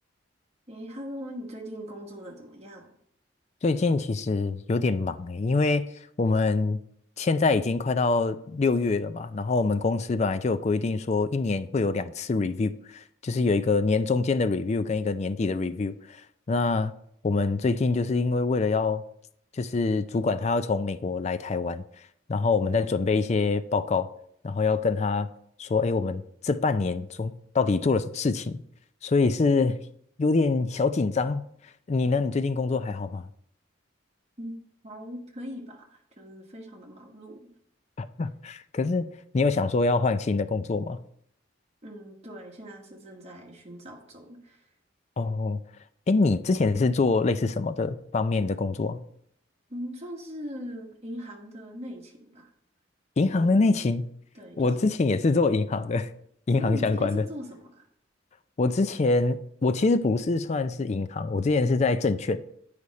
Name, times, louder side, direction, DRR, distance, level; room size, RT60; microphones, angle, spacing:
voice 1, 0.7-2.9 34.4-34.5 34.8-37.4 41.8-44.7 49.7-52.5 53.4-53.6 54.3-54.8 56.5-57.9, equal, 30° right, 1.3 m, -40 dB
voice 2, 3.6-6.8 7.2-16.9 17.2-19.0 19.5-21.8 22.3-24.1 24.4-25.3 25.6-28.6 29.0-29.8 30.2-31.5 31.9-33.3 38.0-39.1 39.3-41.0 45.2-45.6 46.1-49.0 53.2-54.1 54.6-56.1 56.5-57.2 58.6-62.4, left 3 dB, 35° left, 0.3 m, -25 dB
8.3 x 5.0 x 4.2 m
head